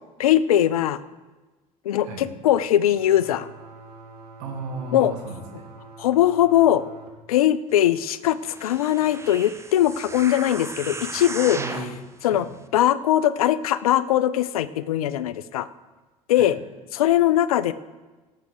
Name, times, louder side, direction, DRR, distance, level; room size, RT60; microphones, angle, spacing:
voice 1, 0.2-1.0 1.8-3.5 4.9-5.1 6.0-6.8 7.3-11.6 12.2-12.5 12.7-15.7 16.3-16.6 16.9-17.7, left 12 dB, 70° left, 16 dB, 0.5 m, -20 dB
sound 1, 2.9-7.1, right 3 dB, 85° right, 1.9 m, -45 dB
voice 2, 4.4-5.7 11.5-11.9 12.3-12.5 16.3-16.5, right 3 dB, 60° right, 2 dB, 2.2 m, -34 dB
sound 2, 8.4-12.0 12.6-12.7, right 3 dB, 15° right, 0.9 m, -35 dB
17.5 x 6.8 x 4.9 m, 1.2 s
figure-of-eight pair, 60°, 19 cm